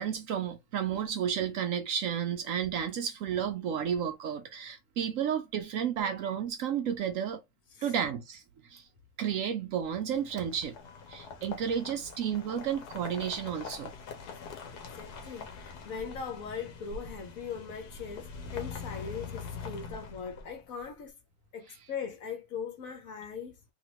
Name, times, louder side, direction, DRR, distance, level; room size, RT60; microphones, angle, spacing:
voice 1, 0.0-7.4 7.8-8.9 9.2-10.8 11.1-13.9, right 8 dB, 70° right, 0.8 m, -32 dB
sound 1, 6.0-6.6 8.8-8.9 10.9-11.5, equal, 5° left, 0.4 m, -54 dB
sound 2, 10.0-20.8, left 5 dB, 85° left, 1.3 m, -44 dB
voice 2, 14.9-21.1 21.5-23.6, left 6 dB, 65° left, 1.2 m, -40 dB
3.0 x 3.0 x 2.8 m
omnidirectional pair, 1.7 m